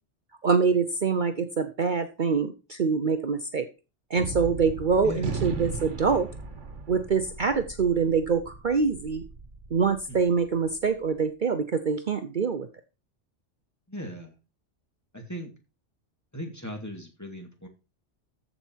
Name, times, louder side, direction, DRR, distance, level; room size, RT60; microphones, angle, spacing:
voice 1, 0.4-3.7 4.1-6.3 6.9-9.2 9.7-12.7, right 5 dB, 45° right, 8 dB, 0.9 m, -25 dB
Gunshot gunfire, 4.2-10.7, right 4 dB, 90° right, 1.7 m, -37 dB
voice 2, 5.0-5.4 10.1-10.2 13.9-14.3 15.1-15.5 16.3-17.7, equal, 15° left, 2 dB, 2.3 m, -38 dB
14.0 x 5.6 x 4.6 m, 0.30 s
omnidirectional pair, 1.2 m